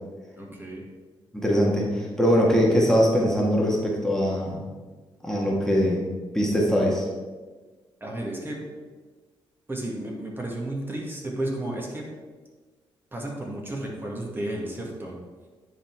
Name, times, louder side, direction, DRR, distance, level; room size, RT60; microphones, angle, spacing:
voice 1, 0.3-0.8 8.0-8.6 9.7-12.1 13.1-15.2, right 1 dB, 20° right, -1 dB, 1.7 m, -33 dB
voice 2, 1.3-4.6 5.2-6.0 6.3-7.1, equal, 5° left, -3 dB, 1.6 m, -22 dB
10.0 x 4.0 x 4.6 m, 1.3 s
cardioid pair, 80°, 10 cm